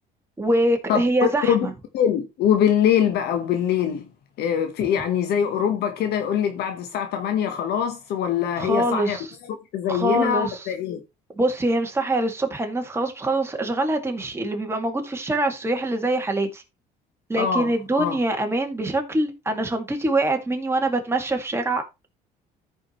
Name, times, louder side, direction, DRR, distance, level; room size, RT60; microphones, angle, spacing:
voice 1, 0.4-1.7 8.6-9.3 9.9-10.7 11.4-16.6 17.3-22.1, right 1 dB, 15° right, 2.0 m, -24 dB
voice 2, 1.9-4.1 4.4-9.2 9.5-11.0 17.4-17.7 18.0-18.2, left 9 dB, 75° left, 1.0 m, -23 dB
14.0 x 4.8 x 3.0 m
cardioid pair, 110°, 17 cm